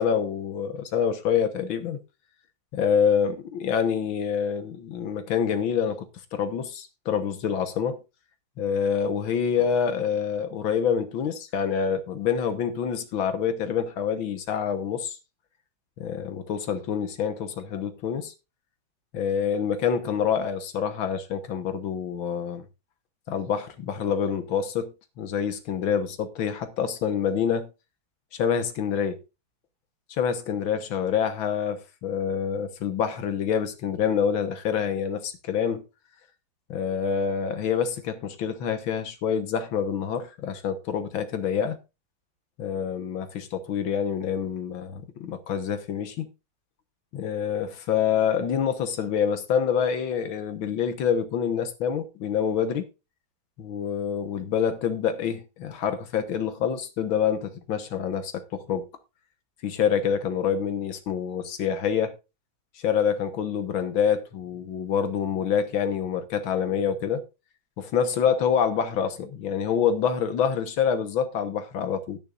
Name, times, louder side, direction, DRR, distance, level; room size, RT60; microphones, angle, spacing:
voice 1, 0.0-2.0 2.7-6.1 6.3-8.0 8.6-15.2 16.0-18.3 19.1-22.6 23.3-27.7 28.3-29.2 30.2-35.8 36.7-41.8 42.6-46.3 47.1-52.9 53.6-58.9 59.6-62.2 62.8-67.2 67.8-72.2, left 7 dB, 80° left, 1.9 m, -26 dB
19.5 x 6.9 x 2.5 m
omnidirectional pair, 2.2 m